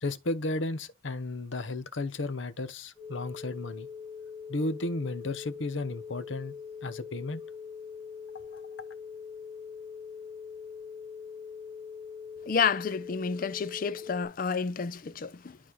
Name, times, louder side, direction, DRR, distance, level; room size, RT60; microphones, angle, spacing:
voice 1, 0.0-3.9 4.5-6.5 6.8-7.4 8.5-8.6, left 2 dB, 80° left, 0.8 m, -33 dB
sound 1, 3.0-14.3, left 6 dB, 15° right, 2.6 m, -43 dB
voice 2, 12.5-15.6, left 6 dB, 45° left, 0.5 m, -30 dB
11.5 x 4.2 x 3.0 m
head